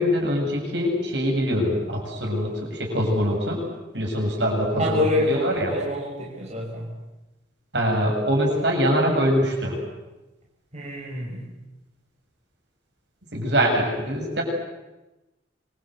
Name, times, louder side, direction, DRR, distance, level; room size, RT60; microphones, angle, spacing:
voice 1, 0.0-3.6 3.9-5.7 7.7-9.8 13.3-14.4, equal, 65° right, 0 dB, 7.7 m, -23 dB
voice 2, 4.8-6.9 10.7-11.5, left 2 dB, 35° right, -3 dB, 5.7 m, -27 dB
27.0 x 24.0 x 8.0 m, 1.0 s
head